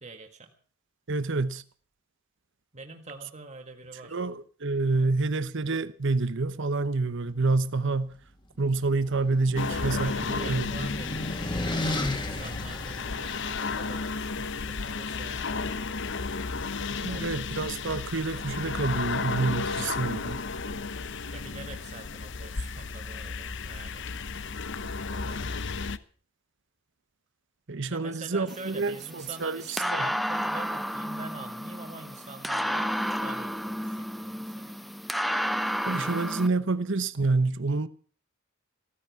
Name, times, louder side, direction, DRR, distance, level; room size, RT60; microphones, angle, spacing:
voice 1, 0.0-0.5 2.7-4.2 4.9-5.1 9.7-16.2 17.0-17.8 21.3-24.6 25.0-25.6 27.9-34.9, right 3 dB, 30° right, 1.7 m, -45 dB
voice 2, 1.1-1.6 4.1-8.2 8.6-10.7 17.0-20.4 27.7-30.1 35.9-37.9, right 3 dB, 60° right, 0.9 m, -28 dB
sound 1, 8.6-13.8, left 1 dB, 20° left, 2.3 m, -34 dB
sound 2, 9.6-26.0, left 4 dB, 55° left, 0.9 m, -33 dB
sound 3, 28.5-36.5, equal, ahead, 0.7 m, -32 dB
16.0 x 14.0 x 5.9 m
head